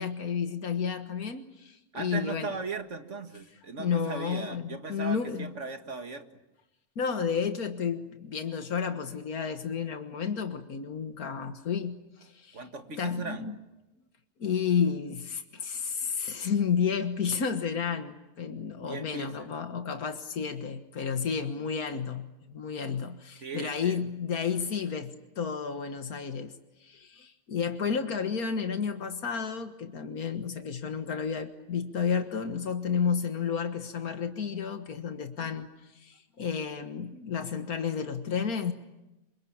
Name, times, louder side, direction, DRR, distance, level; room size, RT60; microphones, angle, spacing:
voice 1, 0.0-2.5 3.8-5.5 7.0-12.6 13.0-13.5 14.4-26.5 26.8-35.7 35.9-38.7, left 6 dB, 90° left, 7 dB, 1.9 m, -31 dB
voice 2, 1.9-6.3 12.5-13.5 18.8-19.5 23.4-24.1, right 4 dB, 55° right, 6 dB, 2.2 m, -38 dB
26.5 x 25.0 x 8.8 m, 0.97 s
omnidirectional pair, 1.5 m